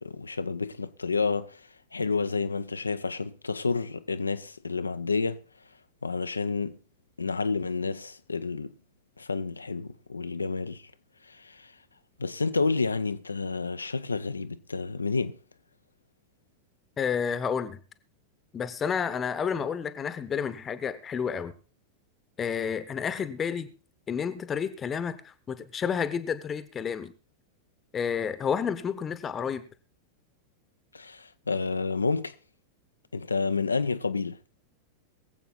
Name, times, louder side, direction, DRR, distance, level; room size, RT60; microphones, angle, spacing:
voice 1, 0.0-1.6 1.9-5.4 6.0-6.8 7.2-8.7 9.2-10.8 11.3-11.7 12.2-15.4 30.9-32.3 33.1-34.4, left 4 dB, 80° left, 0.7 m, -30 dB
voice 2, 17.0-17.8 18.5-21.5 22.4-23.7 24.1-27.1 27.9-29.7, left 7 dB, 25° left, 1.0 m, -30 dB
22.5 x 7.8 x 4.0 m
figure-of-eight pair, 90°, 0 cm